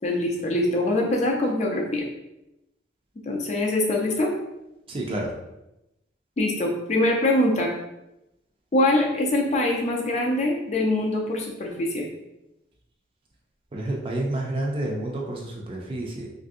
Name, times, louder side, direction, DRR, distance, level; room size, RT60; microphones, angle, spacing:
voice 1, 0.0-2.0 3.3-4.3 6.4-7.7 8.7-12.1, left 1 dB, 35° left, 0 dB, 0.4 m, -23 dB
voice 2, 4.9-5.3 13.7-16.3, right 1 dB, 30° right, -1 dB, 0.4 m, -29 dB
3.1 x 2.5 x 2.6 m, 0.90 s
head